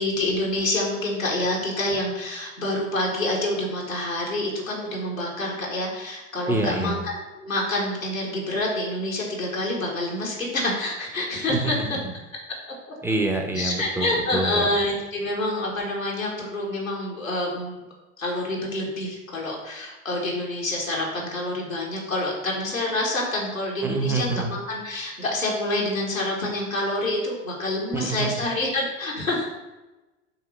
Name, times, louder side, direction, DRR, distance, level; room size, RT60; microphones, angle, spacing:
voice 1, 0.0-7.1 7.4-12.0 13.5-17.8 18.2-29.5, left 1 dB, 85° left, -4 dB, 1.5 m, -27 dB
voice 2, 6.5-7.0 11.5-11.7 13.0-14.7 23.8-24.5 27.9-28.3, right 3 dB, 5° right, 3 dB, 0.9 m, -26 dB
5.7 x 3.7 x 5.8 m, 1.1 s
figure-of-eight pair, 75°, 39 cm